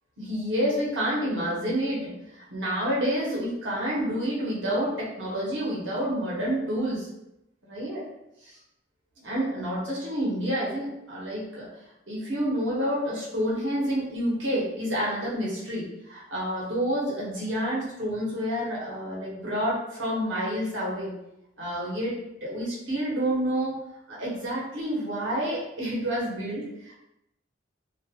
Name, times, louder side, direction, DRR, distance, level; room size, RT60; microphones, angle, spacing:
voice 1, 0.2-7.1 7.6-8.0 9.2-11.7 12.1-21.1 21.6-23.8 24.1-26.9, equal, 70° right, -6 dB, 0.9 m, -29 dB
2.5 x 2.2 x 2.8 m, 0.85 s
head